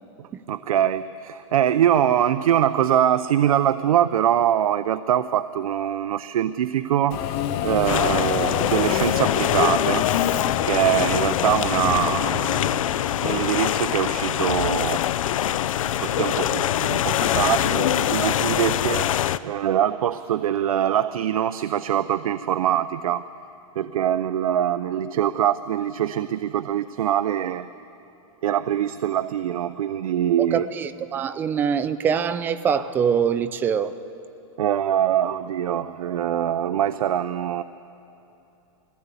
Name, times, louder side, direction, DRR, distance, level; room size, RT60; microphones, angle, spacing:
voice 1, 0.2-10.1 10.6-12.8 13.2-15.0 16.0-23.3 23.8-27.7 28.4-30.7 34.6-37.6, right 10 dB, 90° right, 13 dB, 0.6 m, -23 dB
Subway metro underground, 7.1-13.3, left 10 dB, 30° left, 0.9 m, -27 dB
sound 1, 7.9-19.4, left 11 dB, 70° left, 0.6 m, -24 dB
voice 2, 30.4-33.9, right 7 dB, 10° right, 13 dB, 0.4 m, -24 dB
21.0 x 16.5 x 8.3 m, 2.9 s
supercardioid pair, 160°, 18 cm